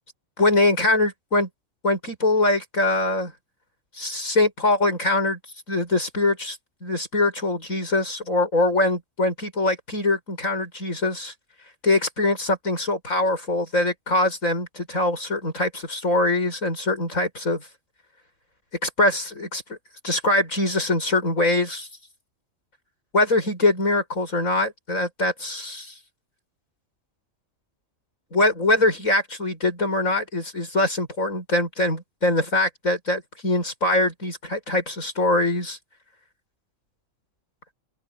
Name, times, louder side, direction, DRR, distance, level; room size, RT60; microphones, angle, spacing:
voice 1, 0.4-1.5 1.8-3.3 4.0-5.4 5.7-11.3 11.8-17.7 18.8-19.8 20.0-21.9 23.1-25.9 28.3-35.8, left 2 dB, 80° left, 8.1 m, -23 dB
open air
omnidirectional pair, 1.4 m